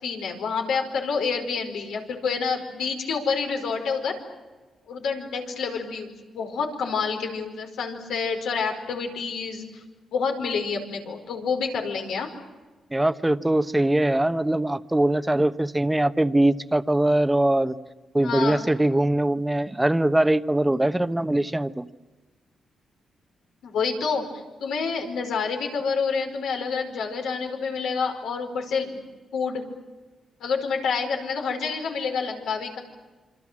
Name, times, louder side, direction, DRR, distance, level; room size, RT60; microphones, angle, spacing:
voice 1, 0.0-4.1 4.9-9.8 10.1-12.3 18.2-18.6 23.6-24.2 24.6-29.0 29.3-29.6 30.4-32.8, left 5 dB, 85° left, 2 dB, 5.0 m, -28 dB
voice 2, 12.9-17.7 18.1-21.8, right 1 dB, 10° right, 11 dB, 1.1 m, -22 dB
27.0 x 25.5 x 7.6 m, 1.3 s
cardioid pair, 80°, 0 cm